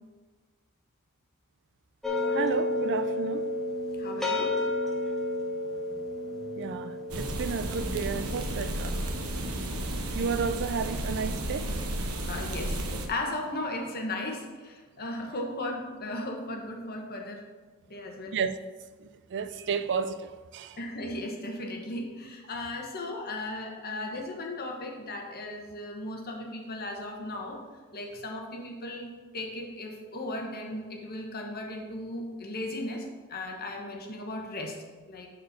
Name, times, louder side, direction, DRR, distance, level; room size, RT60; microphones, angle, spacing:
sound 1, 2.0-11.2, left 2 dB, ahead, 0.8 m, -32 dB
voice 1, 2.3-3.4 6.6-9.0 10.1-11.7 18.3-18.6 19.0-20.8, right 6 dB, 55° right, 0.4 m, -32 dB
voice 2, 4.0-4.6 12.3-17.4 17.9-18.4 20.8-27.6 27.9-34.7 35.1-35.3, left 1 dB, 45° left, 1.2 m, -36 dB
sound 2, 7.1-13.1, right 1 dB, 75° right, 1.0 m, -33 dB
6.7 x 4.5 x 6.7 m
head